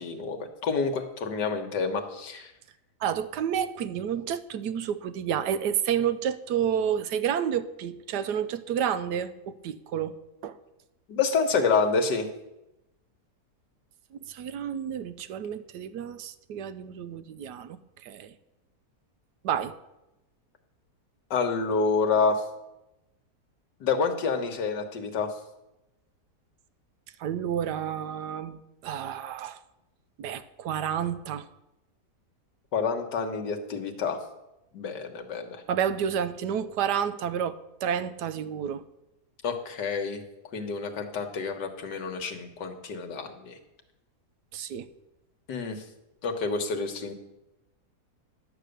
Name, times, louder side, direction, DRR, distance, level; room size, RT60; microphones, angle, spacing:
voice 1, 0.0-2.5 11.1-12.3 21.3-22.4 23.8-25.3 32.7-34.2 34.7-35.6 39.4-40.2 40.5-43.6 45.5-45.8 46.2-47.1, left 4 dB, 90° left, 5 dB, 1.9 m, -28 dB
voice 2, 3.0-10.2 10.4-10.6 14.1-18.3 19.4-19.7 27.2-29.6 30.2-31.5 35.7-38.8 44.5-44.9, right 9 dB, 80° right, 13 dB, 1.3 m, -30 dB
11.5 x 8.0 x 6.6 m, 0.92 s
omnidirectional pair, 1.8 m